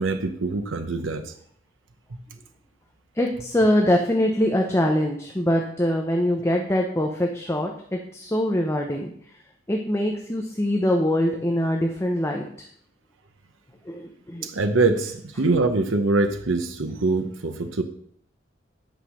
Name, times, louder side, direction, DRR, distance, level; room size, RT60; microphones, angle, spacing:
voice 1, 0.0-1.3 14.4-17.8, right 3 dB, 80° right, 0.9 m, -24 dB
voice 2, 3.1-9.1 9.7-12.7 13.8-14.5, left 1 dB, 15° left, 0.8 m, -23 dB
9.2 x 5.6 x 6.3 m
head